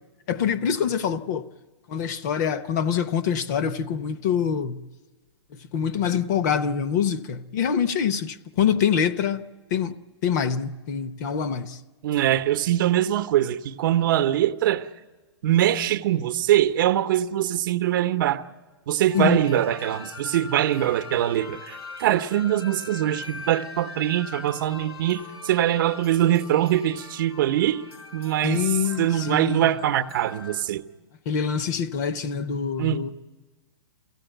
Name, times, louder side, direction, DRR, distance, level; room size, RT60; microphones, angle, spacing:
voice 1, 0.3-1.5 1.9-4.8 5.5-9.5 9.7-9.9 10.2-11.8 19.1-19.4 28.4-29.8 31.3-33.1, left 7 dB, 45° left, 0.8 m, -25 dB
voice 2, 12.0-14.9 15.4-18.4 18.9-27.8 28.1-28.7 29.0-30.8 32.8-33.1, right 12 dB, 50° right, 0.8 m, -23 dB
sound 1, 19.1-30.6, left 4 dB, 85° left, 3.3 m, -41 dB
24.0 x 16.5 x 9.0 m
hypercardioid pair, 160°, 14 cm